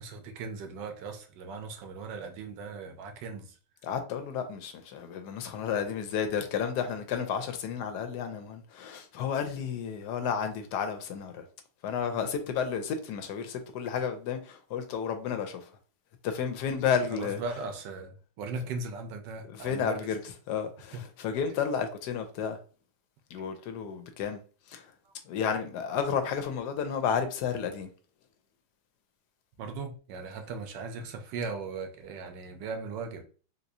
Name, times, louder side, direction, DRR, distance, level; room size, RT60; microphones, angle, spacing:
voice 1, 0.0-3.5 17.1-20.0 20.9-21.0 29.6-33.2, right 4 dB, 90° right, 1.3 m, -38 dB
voice 2, 3.8-11.4 11.8-15.6 16.2-17.4 19.5-20.2 20.5-22.6 23.3-24.4 24.7-24.8 25.3-27.9, left 7 dB, 75° left, 1.1 m, -32 dB
3.6 x 2.9 x 2.6 m
omnidirectional pair, 1.9 m